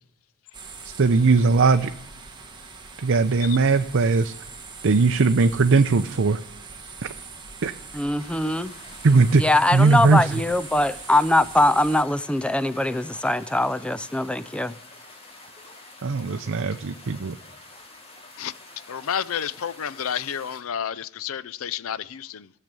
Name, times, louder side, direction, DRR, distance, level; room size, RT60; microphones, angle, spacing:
sound 1, 0.5-12.0, right 4 dB, 20° right, 2.0 m, -42 dB
voice 1, 0.8-1.9 3.0-4.3 4.8-6.4 7.6-7.7 9.0-9.4 9.7-10.3 16.0-17.4, right 4 dB, 65° right, 0.6 m, -19 dB
voice 2, 7.9-8.7 9.4-14.8, left 1 dB, 5° left, 0.4 m, -22 dB
sound 2, 8.2-20.6, left 2 dB, 30° left, 2.5 m, -47 dB
voice 3, 18.9-22.5, left 8 dB, 70° left, 0.5 m, -30 dB
15.5 x 6.7 x 9.0 m
head